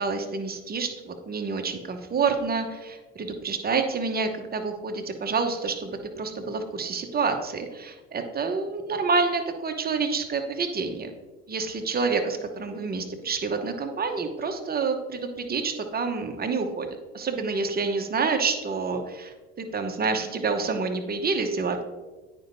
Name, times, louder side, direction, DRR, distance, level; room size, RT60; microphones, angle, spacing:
voice 1, 0.0-11.1 11.5-16.9 17.1-21.8, right 4 dB, 30° right, 5 dB, 1.0 m, -28 dB
9.1 x 5.3 x 2.7 m, 1.2 s
supercardioid pair, 70°, 30 cm